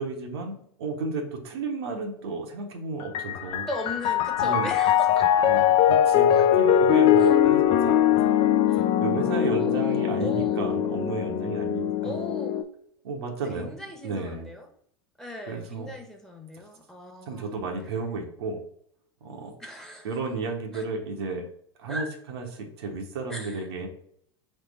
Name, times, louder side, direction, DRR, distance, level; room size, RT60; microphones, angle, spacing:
voice 1, 0.0-3.7 4.4-4.7 5.4-8.3 9.0-12.1 13.0-13.7 14.0-14.5 15.4-15.9 17.3-18.6 19.2-19.5 20.0-21.4 21.8-23.9, right 3 dB, 75° right, 2 dB, 0.9 m, -33 dB
Piano, 3.0-12.6, left 10 dB, 45° left, 0.4 m, -21 dB
voice 2, 3.7-5.3 6.3-6.4 7.2-7.3 8.7-8.9 9.5-10.7 12.0-12.7 13.5-14.6 15.2-17.6 19.6-20.1 20.7-20.8 21.9-22.1 23.3-23.9, left 1 dB, 5° left, 2 dB, 1.0 m, -38 dB
3.4 x 3.3 x 3.3 m, 0.65 s
hypercardioid pair, 85°, 13 cm